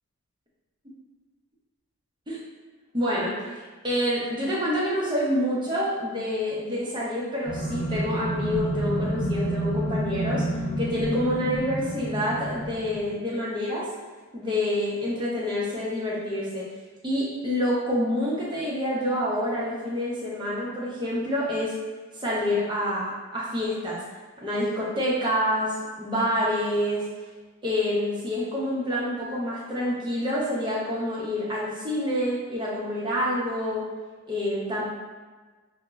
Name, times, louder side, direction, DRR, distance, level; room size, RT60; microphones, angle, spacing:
voice 1, 2.9-10.5 10.8-13.9 14.3-16.7 17.0-21.8 22.2-24.0 24.4-27.0 27.6-33.8 34.3-34.9, equal, 20° right, -6 dB, 0.5 m, -27 dB
sound 1, 7.5-13.1, right 1 dB, 65° left, 0.7 m, -29 dB
2.0 x 2.0 x 3.4 m, 1.3 s
head